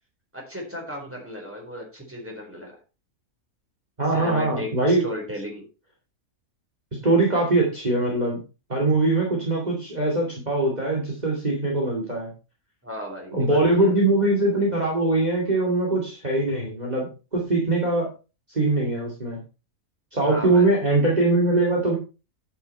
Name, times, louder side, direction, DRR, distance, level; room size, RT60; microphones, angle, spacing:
voice 1, 0.3-2.7 4.1-5.7 12.8-13.9 20.2-20.7, left 1 dB, 10° right, 0 dB, 4.1 m, -35 dB
voice 2, 4.0-5.0 6.9-8.4 8.7-12.3 13.3-18.1 18.5-19.4 20.1-22.0, right 2 dB, 30° right, -2 dB, 2.6 m, -22 dB
9.4 x 8.9 x 4.3 m, 0.32 s
omnidirectional pair, 1.5 m